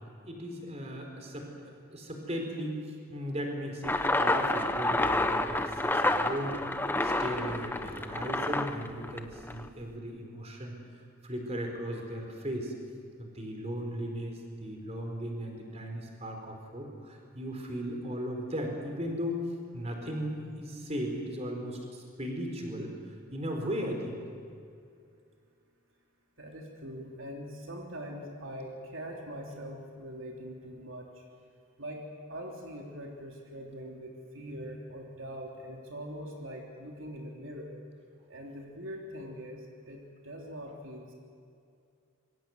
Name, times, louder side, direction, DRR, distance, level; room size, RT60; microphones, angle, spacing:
voice 1, 0.2-1.5 1.9-2.8 3.1-6.6 7.0-10.8 11.2-12.7 13.2-19.4 19.7-22.9 23.3-24.2, equal, 30° right, 2 dB, 4.4 m, -36 dB
sound 1, 3.8-9.7, left 2 dB, 10° left, 1.0 m, -29 dB
voice 2, 26.4-31.2 31.8-37.7 38.3-41.1, equal, 65° right, 0 dB, 3.3 m, -42 dB
26.5 x 24.0 x 8.0 m, 2.4 s
head